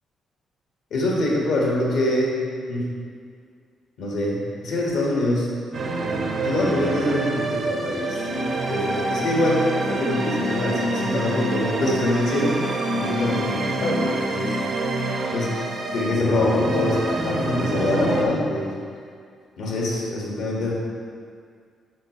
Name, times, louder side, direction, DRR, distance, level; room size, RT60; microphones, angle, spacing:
voice 1, 0.9-2.4 2.7-2.8 4.0-5.5 6.4-12.6 12.9-14.5 15.3-17.0 17.2-18.7 19.6-20.7, left 1 dB, 75° left, -4 dB, 1.9 m, -24 dB
sound 1, 5.7-18.2, right 2 dB, 65° right, 1.3 m, -26 dB
9.9 x 5.7 x 3.3 m, 2.1 s
supercardioid pair, 65°, 0 cm